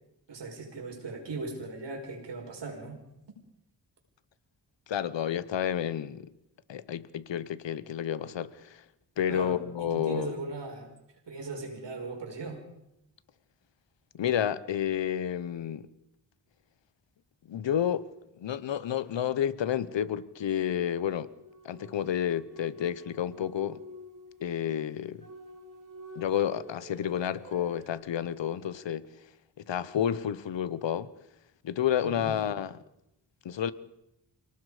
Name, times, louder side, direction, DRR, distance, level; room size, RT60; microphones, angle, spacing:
voice 1, 0.3-3.0 9.3-10.9 11.3-12.6 32.0-32.3, right 3 dB, 75° right, 5.5 m, -38 dB
voice 2, 4.9-6.3 6.7-8.8 9.2-10.4 14.1-15.9 17.5-18.1 18.4-21.3 21.6-23.8 24.4-25.3 26.2-29.1 29.6-31.1 31.6-32.7 33.4-33.7, left 9 dB, 85° left, 1.0 m, -30 dB
sound 1, 20.9-27.9, left 1 dB, 45° right, 4.3 m, -49 dB
28.0 x 18.5 x 5.0 m
cardioid pair, 70°, 43 cm